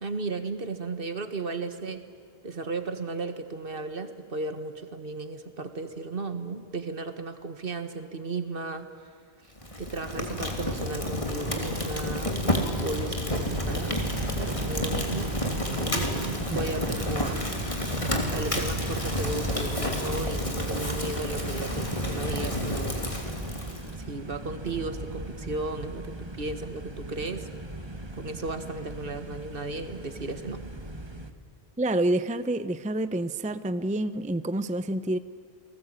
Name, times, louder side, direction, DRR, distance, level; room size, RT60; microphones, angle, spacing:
voice 1, 0.0-2.0 2.4-8.9 9.8-14.0 14.4-15.3 15.7-17.4 18.1-23.0 24.1-27.5 28.1-30.6, right 3 dB, 60° right, 9 dB, 1.8 m, -35 dB
Fire, 9.6-24.0, left 1 dB, 30° left, 3.2 m, -30 dB
sound 1, 13.4-31.3, right 1 dB, 25° right, 1.5 m, -38 dB
voice 2, 31.8-35.2, right 1 dB, 10° right, 13 dB, 0.6 m, -28 dB
29.0 x 19.5 x 8.9 m, 2.3 s
omnidirectional pair, 1.1 m